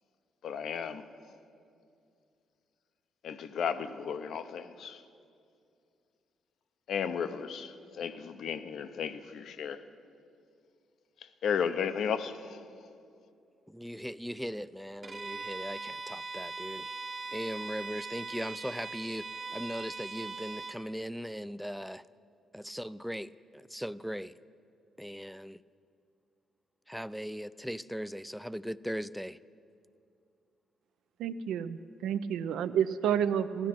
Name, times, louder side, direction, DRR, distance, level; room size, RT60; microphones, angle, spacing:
voice 1, 0.4-1.0 3.2-5.0 6.9-9.8 11.4-12.6, left 7 dB, 65° left, 0.6 m, -34 dB
voice 2, 13.7-16.9 17.3-22.0 22.5-24.4 25.0-25.6 26.9-29.4, equal, ahead, 0.3 m, -39 dB
Bowed string instrument, 15.0-20.8, right 3 dB, 40° right, 0.9 m, -40 dB
voice 3, 31.2-33.7, right 8 dB, 85° right, 0.5 m, -30 dB
16.0 x 12.0 x 5.9 m
cardioid pair, 90°, 0 cm